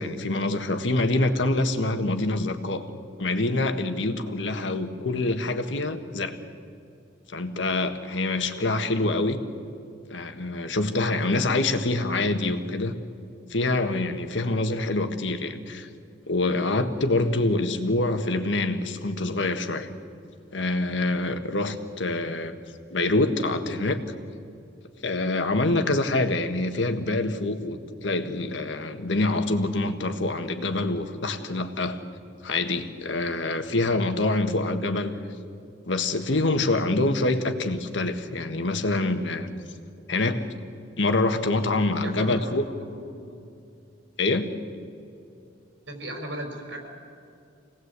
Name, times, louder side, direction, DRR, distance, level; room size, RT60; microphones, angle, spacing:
voice 1, 0.0-2.9 3.2-6.4 7.3-9.4 10.1-12.9 13.5-15.9 16.3-19.9 20.5-22.5 22.9-24.0 25.0-32.0 32.4-35.2 35.9-39.5 40.1-40.4 41.0-42.6 44.2-44.5, left 2 dB, 80° left, 7 dB, 1.6 m, -25 dB
voice 2, 8.6-8.9 42.0-42.5 42.9-43.4 45.9-46.9, right 1 dB, 85° right, 3 dB, 5.1 m, -37 dB
25.5 x 18.5 x 8.2 m, 2.5 s
head